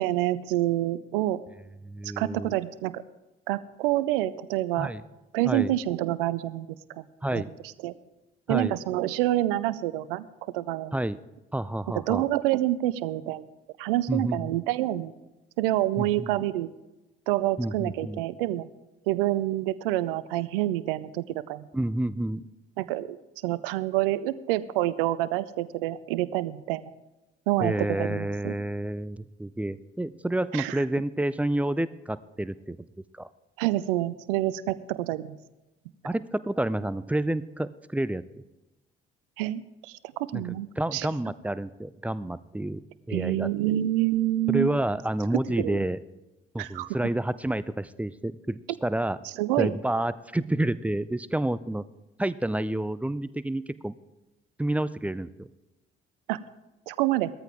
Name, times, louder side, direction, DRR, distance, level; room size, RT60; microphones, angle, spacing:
voice 1, 0.0-1.4 2.0-3.0 3.5-4.9 5.3-7.0 7.3-7.4 7.8-7.9 8.5-10.3 10.5-10.9 11.9-13.4 13.8-15.1 15.6-16.7 17.3-18.7 19.1-21.6 22.8-23.2 23.4-26.9 27.5-28.5 30.5-30.8 33.6-35.4 39.4-39.9 40.3-41.1 43.1-44.7 45.3-45.8 46.6-46.9 49.4-49.7 56.3-56.4 56.9-57.3, right 15 dB, 65° right, 17 dB, 0.6 m, -27 dB
voice 2, 1.8-2.5 4.8-5.0 5.4-5.7 7.2-7.5 8.5-8.7 10.9-11.2 11.5-12.2 14.1-14.6 16.0-16.3 17.6-18.2 21.7-22.4 27.6-32.8 33.1-33.3 36.0-38.2 40.3-43.5 44.5-46.0 46.5-49.2 49.6-51.8 52.2-53.9 54.6-55.5, right 1 dB, 5° right, 17 dB, 0.4 m, -29 dB
16.5 x 13.5 x 3.5 m, 1.0 s
figure-of-eight pair, 50°, 29 cm